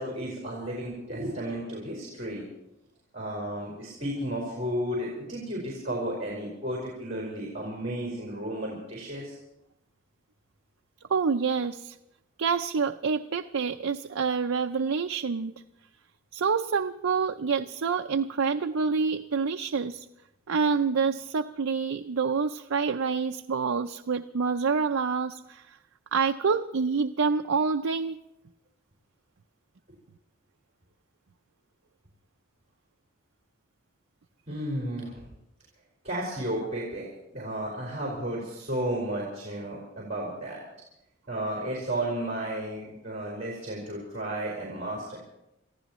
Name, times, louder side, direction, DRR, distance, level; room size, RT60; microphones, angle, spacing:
voice 1, 0.0-2.4 3.1-9.4 34.5-35.3 36.0-37.1 37.3-40.6 41.3-45.2, right 1 dB, 35° right, -4 dB, 4.5 m, -33 dB
voice 2, 11.1-12.0 12.4-15.5 16.3-20.1 20.5-25.8 26.1-28.2, right 5 dB, 80° right, 6 dB, 0.5 m, -27 dB
28.0 x 15.0 x 3.1 m, 0.89 s
head